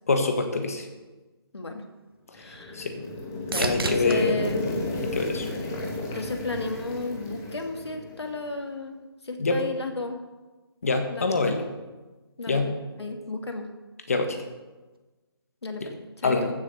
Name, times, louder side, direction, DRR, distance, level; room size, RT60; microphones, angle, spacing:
voice 1, 0.1-0.9 2.7-3.0 3.5-4.3 5.1-5.5 9.4-9.6 10.8-11.6 12.5-12.7 14.1-14.4 15.8-15.9 16.2-16.5, left 3 dB, 35° left, 6 dB, 1.5 m, -25 dB
sound 1, 1.8-6.0 6.5-7.1 14.9-15.0, right 3 dB, 60° right, 1.5 m, -36 dB
voice 2, 2.3-2.9 3.5-4.6 6.1-10.2 11.1-11.6 12.4-13.7 15.6-16.4, left 3 dB, 85° left, 4 dB, 2.5 m, -34 dB
sound 2, 2.4-8.5, left 2 dB, 5° left, 0.7 m, -33 dB
14.5 x 7.6 x 6.8 m, 1.2 s
hypercardioid pair, 180°, 13 cm